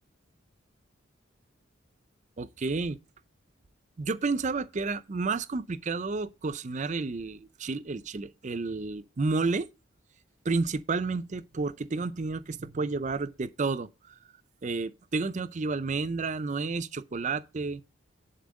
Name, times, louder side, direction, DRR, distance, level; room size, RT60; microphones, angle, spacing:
voice 1, 2.4-3.0 4.0-9.7 10.4-14.1 14.6-17.8, right 3 dB, 35° right, 0.5 m, -31 dB
10.5 x 4.4 x 6.3 m
head